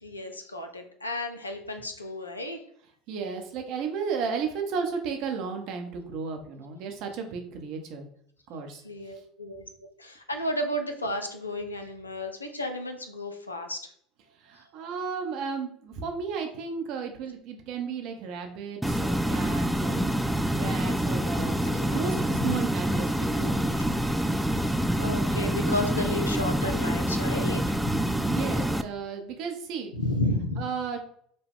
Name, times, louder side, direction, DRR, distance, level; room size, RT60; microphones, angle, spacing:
voice 1, 0.0-2.6 8.8-9.6 10.0-13.8 21.7-22.5 25.0-28.1 29.9-30.6, left 1 dB, 90° left, 5 dB, 0.5 m, -32 dB
voice 2, 3.1-8.1 8.5-8.8 14.5-20.1 20.5-24.0 28.2-29.9 30.6-31.0, right 5 dB, 55° right, 4 dB, 0.8 m, -34 dB
sound 1, 18.8-28.8, equal, 5° right, 0.3 m, -26 dB
5.1 x 2.3 x 3.5 m, 0.64 s
figure-of-eight pair, 70°, 0 cm